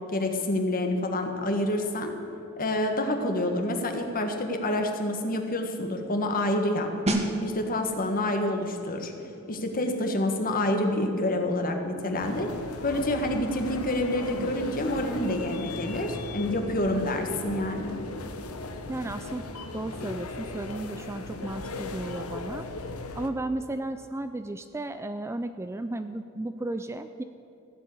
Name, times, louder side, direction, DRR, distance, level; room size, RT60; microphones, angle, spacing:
voice 1, 0.1-2.1 2.6-6.9 7.4-9.1 9.5-12.5 12.8-18.0, left 1 dB, 40° left, 4 dB, 1.6 m, -28 dB
sound 1, 7.1-17.6 17.8-18.1, right 1 dB, 30° right, 1.4 m, -38 dB
sound 2, 12.2-23.3, left 2 dB, 75° left, 1.1 m, -37 dB
voice 2, 14.3-14.8 16.9-17.0 18.9-19.4 19.7-22.7 23.1-27.2, right 2 dB, 10° right, 10 dB, 0.3 m, -34 dB
15.5 x 7.4 x 9.7 m, 2.8 s
head